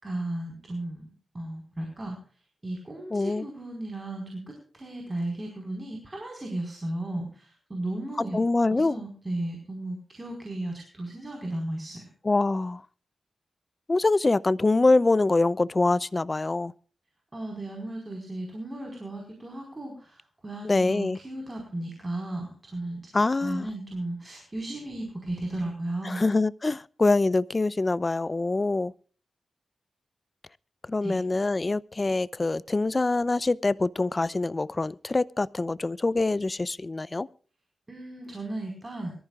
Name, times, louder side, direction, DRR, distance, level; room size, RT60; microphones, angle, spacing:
voice 1, 0.0-2.2 2.6-4.4 4.7-8.4 8.7-12.0 17.3-26.2 31.0-31.2 37.9-39.1, right 1 dB, 25° right, 4.7 m, -35 dB
voice 2, 3.1-3.5 8.3-9.0 12.2-12.8 13.9-16.7 20.6-21.2 23.1-23.6 26.0-28.9 30.9-37.3, left 3 dB, 30° left, 0.6 m, -24 dB
24.0 x 14.5 x 2.4 m
cardioid pair, 85°, 0 cm